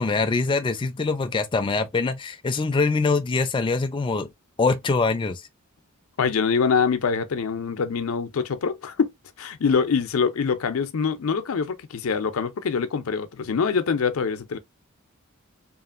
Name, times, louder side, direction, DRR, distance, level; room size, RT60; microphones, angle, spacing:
voice 1, 0.0-4.3 4.6-5.4, left 4 dB, 25° left, 0.3 m, -23 dB
voice 2, 6.2-9.1 9.4-14.6, left 5 dB, 85° left, 0.5 m, -24 dB
2.9 x 2.4 x 2.4 m
head